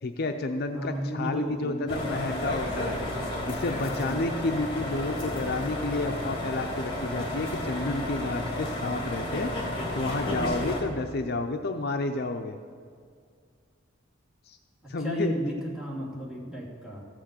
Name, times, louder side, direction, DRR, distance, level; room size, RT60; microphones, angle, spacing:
voice 1, 0.0-3.0 3.5-9.5 9.9-12.6 14.5-14.6 14.9-15.3, left 2 dB, 50° left, 5 dB, 0.6 m, -30 dB
voice 2, 0.7-2.2 3.8-4.3 14.8-17.0, equal, 5° right, -6 dB, 2.6 m, -34 dB
sound 1, 1.9-10.8, left 1 dB, 25° left, 2.9 m, -32 dB
15.0 x 6.3 x 8.1 m, 2.1 s
head